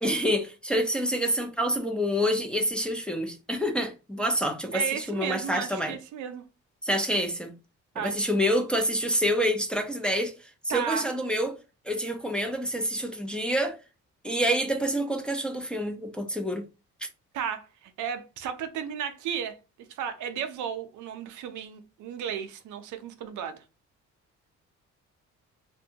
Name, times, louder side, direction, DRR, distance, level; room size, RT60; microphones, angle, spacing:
voice 1, 0.0-6.0 6.8-7.5 8.0-10.3 10.7-11.6 11.9-13.8 14.2-16.6, equal, 5° left, 0.4 m, -27 dB
voice 2, 4.7-6.4 7.9-8.3 10.7-11.1 17.3-19.6 19.9-23.6, right 8 dB, 75° right, 0.5 m, -34 dB
2.6 x 2.2 x 2.7 m
cardioid pair, 90°, 30 cm